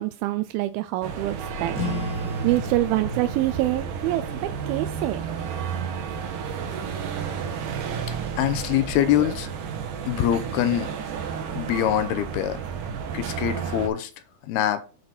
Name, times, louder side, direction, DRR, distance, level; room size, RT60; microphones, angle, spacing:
voice 1, 0.0-1.8 2.4-5.2, right 16 dB, 80° right, 2.2 m, -26 dB
sound 1, 1.0-13.9, right 7 dB, 65° right, 2.5 m, -32 dB
sound 2, 1.7-6.8, equal, 50° left, 1.5 m, -36 dB
voice 2, 8.4-9.5 10.1-10.9 11.5-12.6 13.1-14.1 14.5-14.8, left 11 dB, 80° left, 2.8 m, -24 dB
7.8 x 5.7 x 4.4 m
omnidirectional pair, 4.5 m